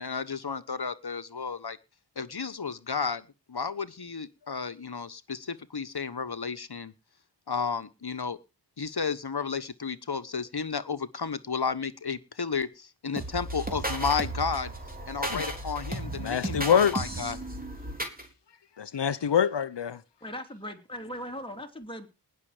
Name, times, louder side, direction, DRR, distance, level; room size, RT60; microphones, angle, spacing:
voice 1, 0.0-1.8 2.2-6.9 7.5-8.4 8.8-14.7 15.0-17.4, left 5 dB, 65° left, 1.3 m, -32 dB
sound 1, 13.2-18.2, right 1 dB, 20° right, 3.9 m, -34 dB
voice 2, 16.2-16.9 18.8-20.0, left 8 dB, 80° left, 0.7 m, -25 dB
voice 3, 20.2-22.1, equal, 10° left, 3.1 m, -39 dB
19.5 x 6.8 x 5.0 m
wide cardioid pair, 45°, 42 cm